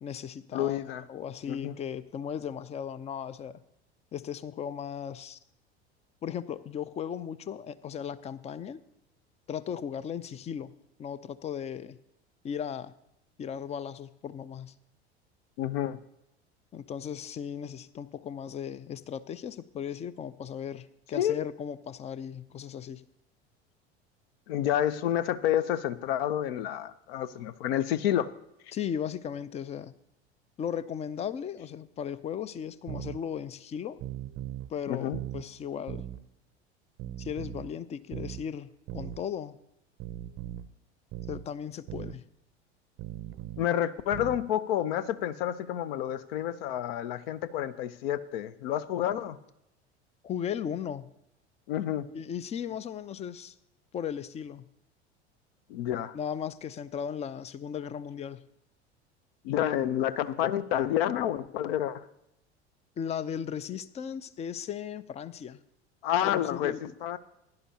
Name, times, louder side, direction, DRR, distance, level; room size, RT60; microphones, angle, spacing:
voice 1, 0.0-0.8 1.1-3.5 4.1-5.4 6.2-8.8 9.5-10.7 11.0-12.0 12.4-12.9 13.4-14.8 16.7-23.0 28.7-29.9 30.6-34.0 34.7-36.0 37.2-39.6 41.3-42.2 50.2-51.1 52.1-53.5 53.9-54.7 56.1-58.4 63.0-65.6 66.2-66.9, left 8 dB, 20° left, 17 dB, 0.4 m, -36 dB
voice 2, 0.5-1.0 1.5-1.7 15.6-16.0 21.1-21.4 24.5-28.3 34.9-35.2 43.6-49.4 51.7-52.1 55.7-56.1 59.4-62.0 66.0-66.7 67.0-67.2, left 11 dB, 60° left, 16 dB, 0.7 m, -29 dB
sound 1, 32.9-33.2 34.0-34.7 35.1-35.5 35.9-36.2 37.0-37.7 38.1-38.4 38.9-39.2 40.0-40.7 41.1-41.5 41.9-42.2 43.0-43.7 44.1-44.5, right 12 dB, 35° right, 0.6 m, -39 dB
16.0 x 10.5 x 2.8 m, 0.84 s
figure-of-eight pair, 75°, 33 cm